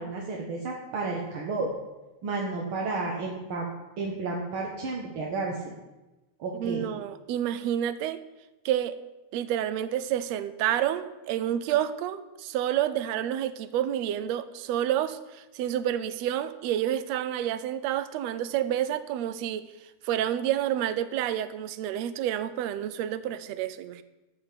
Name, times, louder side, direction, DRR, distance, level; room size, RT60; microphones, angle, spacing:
voice 1, 0.0-1.7 2.2-3.7 4.0-5.7 6.4-6.9, right 3 dB, 55° right, -1 dB, 1.6 m, -32 dB
voice 2, 6.5-8.2 8.6-9.0 9.3-19.6 20.0-24.0, right 11 dB, 80° right, 13 dB, 1.5 m, -29 dB
12.5 x 5.9 x 8.4 m, 1.1 s
omnidirectional pair, 3.7 m